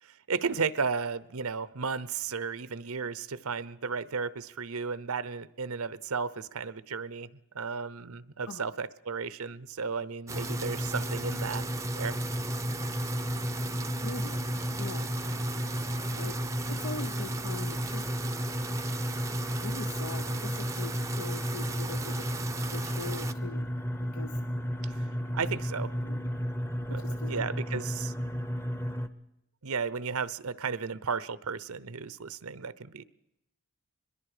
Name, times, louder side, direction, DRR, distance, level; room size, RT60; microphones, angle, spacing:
voice 1, 0.0-7.3 7.5-11.6 12.0-12.2 24.8-25.1 25.3-25.9 26.9-28.1 29.6-33.0, right 5 dB, 75° right, 17 dB, 0.8 m, -34 dB
sound 1, 10.3-29.1, equal, 10° left, 0.9 m, -33 dB
sound 2, 10.3-23.3, right 4 dB, 15° right, 0.6 m, -39 dB
voice 2, 14.0-14.4 14.8-15.1 16.2-16.4 16.7-18.1 19.6-22.3 22.7-23.7 24.1-24.4 26.0-26.4 27.0-27.4 27.7-27.8, left 3 dB, 70° left, 10 dB, 0.8 m, -42 dB
24.0 x 21.5 x 5.0 m, 0.86 s
head